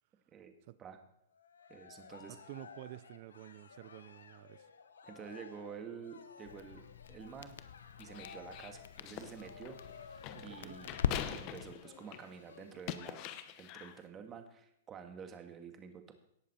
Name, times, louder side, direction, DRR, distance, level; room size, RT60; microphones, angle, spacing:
Cheering, 1.3-13.1, left 5 dB, 90° left, 1.1 m, -56 dB
voice 1, 1.7-2.4 5.0-6.8 7.1-7.6 8.0-10.0 10.4-11.0 11.2-16.1, right 7 dB, 25° right, 6 dB, 1.7 m, -49 dB
voice 2, 2.3-4.7 10.3-10.8, right 16 dB, 50° right, 16 dB, 0.5 m, -50 dB
Crackle, 6.4-11.7, left 8 dB, 70° left, 0.7 m, -42 dB
sound 1, 8.0-12.4 12.7-14.0, left 11 dB, 40° left, 0.9 m, -44 dB
18.0 x 7.6 x 4.3 m, 0.76 s
hypercardioid pair, 125°, 0 cm